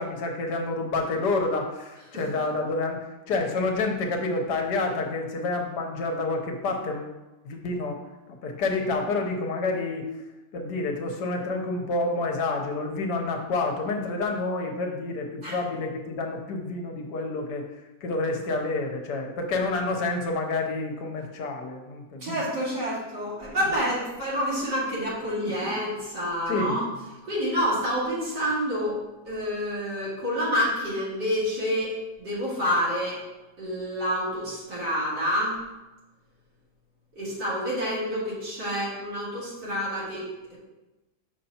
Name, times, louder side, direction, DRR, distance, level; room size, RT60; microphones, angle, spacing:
voice 1, 0.0-7.1 7.4-8.0 8.4-10.1 10.5-17.6 18.0-22.4 25.4-25.5 26.5-26.7, left 3 dB, 70° left, 2 dB, 1.4 m, -28 dB
voice 2, 22.2-26.9 27.2-29.0 29.3-33.2 33.6-35.6 37.1-40.6, equal, 70° right, -8 dB, 3.0 m, -28 dB
6.6 x 5.7 x 2.8 m, 1.1 s
omnidirectional pair, 1.9 m